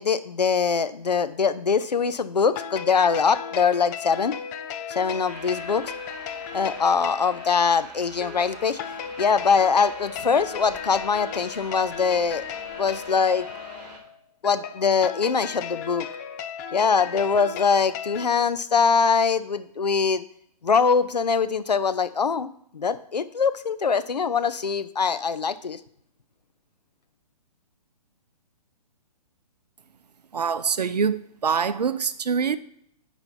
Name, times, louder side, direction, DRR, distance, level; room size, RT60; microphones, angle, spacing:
voice 1, 0.0-4.3 4.9-5.8 6.5-8.8 9.2-12.4 12.8-13.5 14.4-16.1 16.7-20.2 20.6-25.8, left 5 dB, 80° left, 0.6 m, -23 dB
sound 1, 2.4-18.3, left 8 dB, 25° left, 0.6 m, -36 dB
sound 2, 5.2-14.0, right 2 dB, 30° right, 2.4 m, -44 dB
voice 2, 30.3-32.6, right 6 dB, 75° right, 0.6 m, -25 dB
9.8 x 4.3 x 4.5 m
figure-of-eight pair, 125°, 21 cm